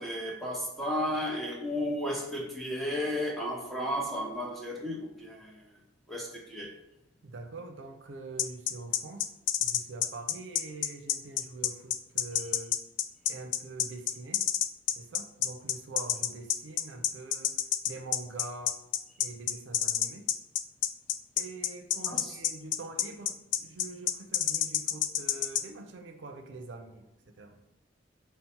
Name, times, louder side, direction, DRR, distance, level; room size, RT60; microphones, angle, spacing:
voice 1, 0.0-5.6 6.1-6.7 22.1-22.4, equal, ahead, -2 dB, 0.7 m, -33 dB
voice 2, 7.2-9.3 9.6-12.8 13.3-14.5 15.0-17.5 17.9-18.8 19.2-20.3 21.4-27.6, right 3 dB, 80° right, 4 dB, 0.5 m, -44 dB
sound 1, 8.4-25.6, left 11 dB, 70° left, 0.3 m, -28 dB
4.1 x 2.0 x 4.3 m, 0.89 s
head